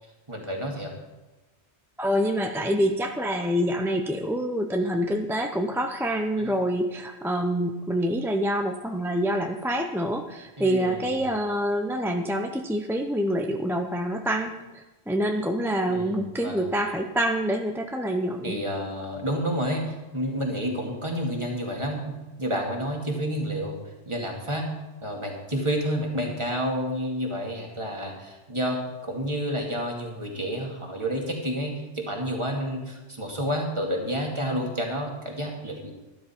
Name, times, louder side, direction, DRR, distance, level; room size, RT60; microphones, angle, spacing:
voice 1, 0.3-0.9 4.7-4.9 6.4-6.5 10.6-11.4 15.9-16.8 18.4-23.8 24.1-24.7 25.0-35.9, equal, 25° right, 0 dB, 2.2 m, -30 dB
voice 2, 2.0-14.6 15.1-18.6, equal, 5° right, 4 dB, 0.4 m, -26 dB
12.5 x 12.0 x 4.4 m, 1.1 s
omnidirectional pair, 1.2 m